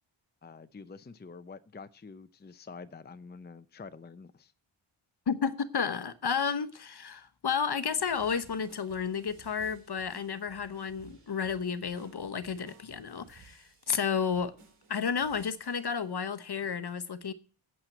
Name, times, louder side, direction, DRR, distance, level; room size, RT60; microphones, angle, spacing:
voice 1, 0.4-4.5, left 4 dB, 20° left, 0.6 m, -47 dB
voice 2, 5.3-14.5 14.9-17.3, left 6 dB, 50° left, 1.0 m, -32 dB
sound 1, 7.9-16.1 16.5-16.7, right 4 dB, 85° right, 3.1 m, -58 dB
8.8 x 7.6 x 8.0 m
wide cardioid pair, 75°, 50 cm